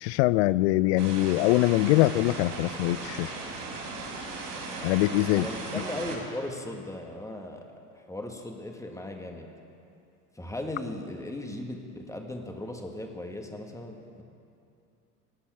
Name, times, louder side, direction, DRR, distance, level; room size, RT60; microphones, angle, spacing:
voice 1, 0.0-3.3 4.8-5.5, left 17 dB, 45° left, 19 dB, 0.5 m, -23 dB
sound 1, 1.0-6.2, right 3 dB, 55° right, 4.5 m, -37 dB
voice 2, 5.3-7.7 7.9-9.5 10.4-14.2, left 1 dB, 5° left, 3 dB, 1.8 m, -37 dB
19.0 x 8.3 x 8.6 m, 2.5 s
figure-of-eight pair, 80°, 47 cm